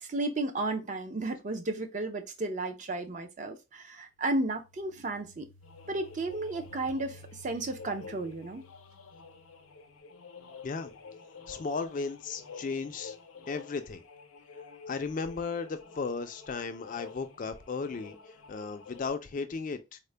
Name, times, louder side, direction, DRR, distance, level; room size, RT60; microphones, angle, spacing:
voice 1, 0.0-5.5 5.9-8.6, right 2 dB, 35° right, 0.5 m, -33 dB
sound 1, 4.2-9.9, left 1 dB, 75° right, 0.8 m, -55 dB
sound 2, 5.6-19.1, left 5 dB, 90° left, 0.6 m, -50 dB
voice 2, 11.5-13.2 13.5-14.0 14.9-18.2 18.5-20.0, left 4 dB, 40° left, 0.3 m, -35 dB
3.7 x 2.0 x 3.2 m
head